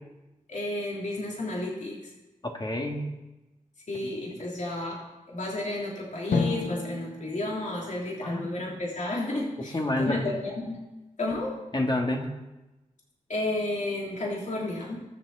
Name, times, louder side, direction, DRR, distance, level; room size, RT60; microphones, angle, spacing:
voice 1, 0.5-2.1 3.9-10.8 11.2-11.5 13.3-15.0, left 2 dB, 60° left, -3 dB, 3.4 m, -32 dB
voice 2, 2.4-3.2 4.3-4.4 8.2-8.5 9.7-10.2 11.7-12.3, left 1 dB, 30° left, 2 dB, 2.4 m, -28 dB
Drum, 6.3-8.8, left 4 dB, 85° left, 1.1 m, -32 dB
21.5 x 7.8 x 4.3 m, 1.0 s
cardioid pair, 55°, 14 cm